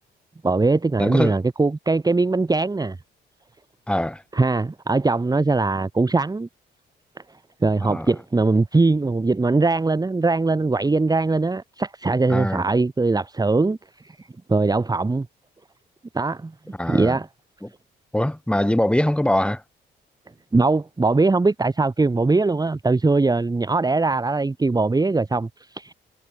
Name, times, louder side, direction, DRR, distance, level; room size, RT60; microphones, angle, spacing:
voice 1, 0.4-3.0 4.3-6.5 7.6-15.3 16.1-16.5 16.9-17.3 20.5-25.9, right 3 dB, 20° right, 2.1 m, -21 dB
voice 2, 1.0-1.4 3.9-4.2 7.9-8.1 12.3-12.7 16.8-17.2 17.6-17.7 18.1-19.6, left 1 dB, 5° left, 7.7 m, -22 dB
cardioid pair, 90°, 20 cm